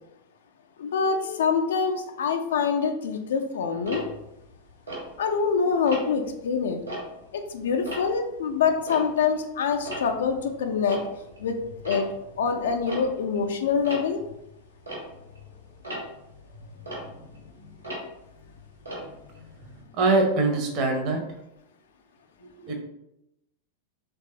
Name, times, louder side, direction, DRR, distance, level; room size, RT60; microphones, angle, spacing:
voice 1, 0.8-4.0 5.2-6.8 7.3-11.0 11.4-11.6 11.8-12.1 12.4-14.2, left 6 dB, 60° left, 5 dB, 0.3 m, -25 dB
Tick-tock, 3.8-5.5 5.9-6.3 6.7-9.5 9.7-19.8, right 1 dB, 80° right, 1.1 m, -39 dB
voice 2, 20.0-21.2 22.6-22.8, right 3 dB, 40° right, 3 dB, 0.6 m, -23 dB
3.1 x 2.3 x 2.7 m, 0.85 s
figure-of-eight pair, 90°, 0 cm